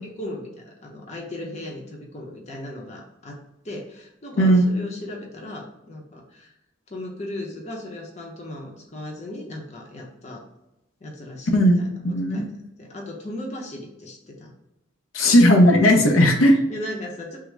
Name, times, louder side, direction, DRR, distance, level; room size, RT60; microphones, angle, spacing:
voice 1, 0.0-3.4 3.6-6.5 6.9-10.4 11.0-11.9 12.3-12.4 12.8-14.5 16.0-17.4, left 1 dB, 35° left, -1 dB, 0.6 m, -36 dB
voice 2, 11.5-12.5 15.1-16.5, equal, 85° left, 2 dB, 0.6 m, -16 dB
3.5 x 2.0 x 3.2 m, 0.90 s
head